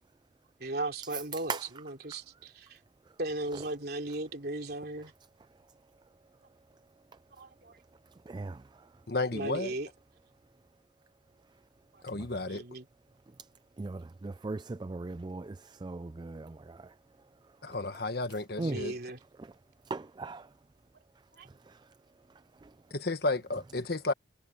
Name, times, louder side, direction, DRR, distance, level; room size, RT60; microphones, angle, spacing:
voice 1, 0.6-2.8 3.2-5.1 7.4-7.8 9.3-9.9 11.9-12.0 12.4-12.9 18.5-19.2 21.3-21.5, right 2 dB, 60° right, 3.3 m, -37 dB
voice 2, 8.3-8.9 12.1-12.4 13.8-16.9 18.6-18.8 19.4-19.5 19.9-20.5 21.7-21.9 22.6-22.7, right 3 dB, 25° right, 0.3 m, -39 dB
voice 3, 9.1-9.7 12.0-12.6 17.6-18.9 22.9-24.1, left 2 dB, 60° left, 1.5 m, -32 dB
head